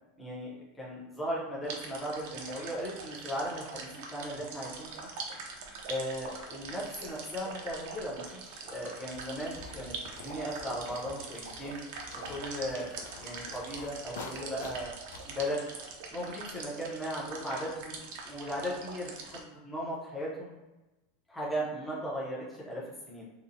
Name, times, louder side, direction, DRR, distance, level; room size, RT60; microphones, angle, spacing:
voice 1, 0.2-5.1 5.9-9.9 10.2-11.8 12.1-12.9 13.2-14.9 15.2-15.6 16.1-18.0 18.2-20.5 21.3-22.8 23.1-23.3, equal, 5° left, -6 dB, 0.5 m, -37 dB
sound 1, 1.6-19.4, right 4 dB, 60° right, 0.4 m, -43 dB
sound 2, 9.1-15.4, left 3 dB, 85° left, 0.3 m, -48 dB
2.7 x 2.0 x 2.5 m, 1.1 s
supercardioid pair, 165°, 0 cm